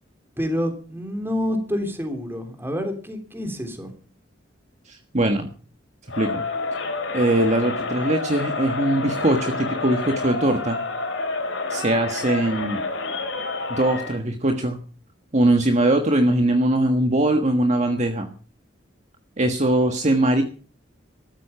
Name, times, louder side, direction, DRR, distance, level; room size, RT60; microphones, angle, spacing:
voice 1, 0.4-3.9, equal, 10° right, 5 dB, 3.3 m, -28 dB
voice 2, 4.9-5.5 6.2-6.4 7.1-10.8 11.7-12.8 13.7-14.8 15.3-18.3 19.4-20.4, right 1 dB, 40° right, 4 dB, 1.5 m, -21 dB
Crowd, 6.1-14.2, left 3 dB, 85° left, 4.2 m, -29 dB
14.0 x 13.0 x 5.7 m, 0.39 s
head